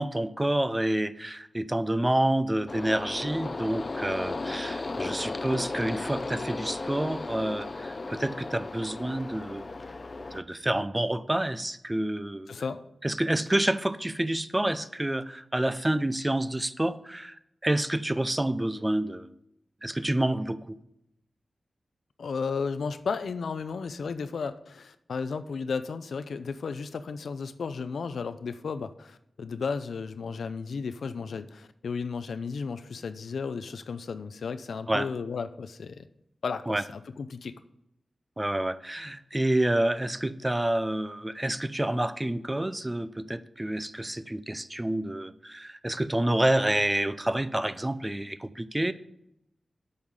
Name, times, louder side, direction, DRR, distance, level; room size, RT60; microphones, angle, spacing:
voice 1, 0.0-9.7 10.3-12.5 13.0-17.4 17.6-19.3 19.8-20.8 34.9-35.1 36.7-36.8 38.4-48.9, right 1 dB, 15° right, 13 dB, 0.5 m, -28 dB
sound 1, 2.7-10.4, left 3 dB, 40° left, 0.5 m, -35 dB
voice 2, 12.5-12.8 22.2-36.1 36.4-37.5, left 5 dB, 90° left, 12 dB, 0.5 m, -34 dB
8.5 x 5.6 x 8.0 m, 0.80 s
wide cardioid pair, 85°, 0 cm